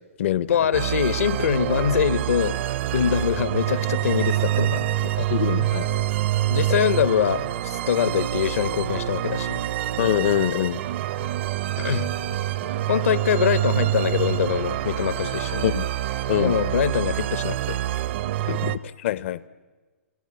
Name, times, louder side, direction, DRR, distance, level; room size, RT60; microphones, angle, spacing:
voice 1, 0.5-2.6 2.9-4.9 6.5-9.6 11.8-12.1 12.9-15.6 16.4-17.8, left 8 dB, 75° left, 15 dB, 1.1 m, -23 dB
sound 1, 0.7-18.8, right 13 dB, 50° right, 0.9 m, -26 dB
voice 2, 5.2-5.9 10.0-10.8 15.6-15.9 16.3-16.5 18.5-19.5, left 11 dB, 55° left, 18 dB, 0.8 m, -24 dB
29.0 x 23.0 x 8.8 m, 1.4 s
hypercardioid pair, 135°, 8 cm